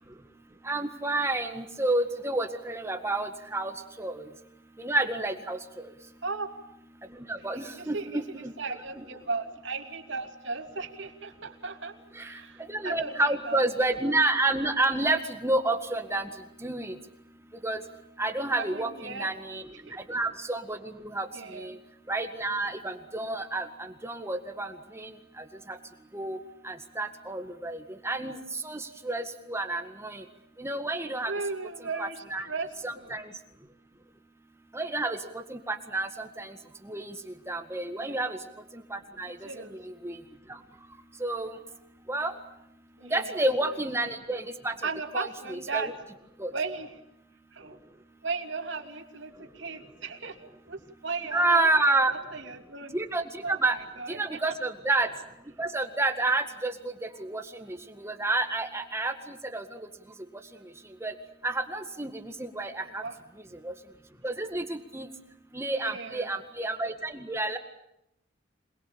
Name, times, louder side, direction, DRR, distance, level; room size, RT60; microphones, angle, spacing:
voice 1, 0.7-4.2 4.8-5.9 7.3-8.5 9.0-9.1 12.2-12.3 12.7-16.3 16.6-16.9 17.6-17.8 18.2-19.7 20.1-21.3 21.5-21.8 22.1-25.8 26.1-26.4 26.6-28.4 28.6-30.2 30.6-31.3 32.0-32.5 32.8-33.2 34.7-35.2 35.5-36.6 36.9-38.4 38.9-39.4 39.7-40.2 41.2-41.6 42.1-42.3 43.1-44.8 45.1-45.9 46.4-46.5 51.3-52.1 52.9-53.2 53.5-53.8 54.1-55.1 55.6-56.7 57.0-59.6 61.0-61.1 61.4-63.0 63.6-63.7 64.2-65.1 65.5-67.6, right 2 dB, 15° right, 6 dB, 1.8 m, -29 dB
voice 2, 7.8-13.6 18.6-19.3 19.9-20.0 21.3-21.7 31.3-33.1 38.0-38.2 39.4-39.8 43.0-43.8 44.8-45.9 46.5-46.9 47.5-47.8 48.2-52.0 52.3-53.0 53.4-54.5 62.8-63.2 65.7-66.3, right 4 dB, 75° right, 5 dB, 2.8 m, -36 dB
27.0 x 21.0 x 8.7 m, 0.81 s
head